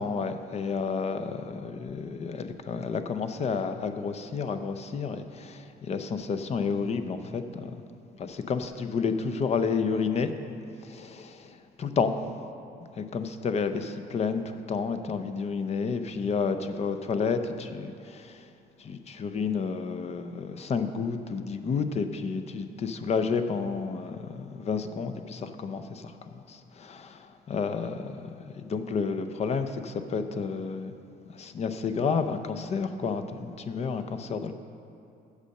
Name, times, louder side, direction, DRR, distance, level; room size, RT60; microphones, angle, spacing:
voice 1, 0.0-7.7 8.2-10.3 10.8-12.1 13.0-18.4 18.8-30.9 31.3-34.5, left 5 dB, 40° left, 9 dB, 0.6 m, -31 dB
8.2 x 6.5 x 6.5 m, 2.6 s
cardioid pair, 110°, 17 cm